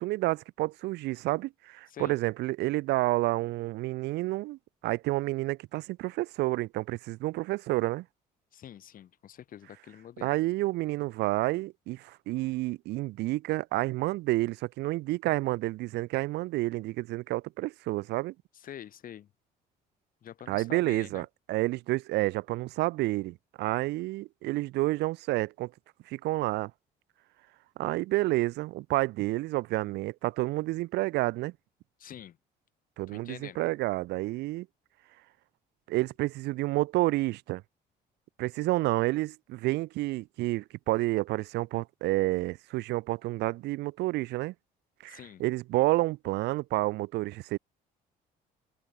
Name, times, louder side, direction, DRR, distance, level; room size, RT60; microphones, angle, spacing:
voice 1, 0.0-8.0 10.2-18.3 20.5-25.7 26.1-26.7 27.8-31.5 33.0-34.7 35.9-37.6 38.4-44.5 45.0-47.6, right 19 dB, 80° right, 0.8 m, -29 dB
voice 2, 8.5-10.3 18.5-19.3 20.2-21.3 32.0-32.4 33.1-33.6 45.1-45.4, left 10 dB, 55° left, 6.0 m, -46 dB
cardioid pair, 110°, 17 cm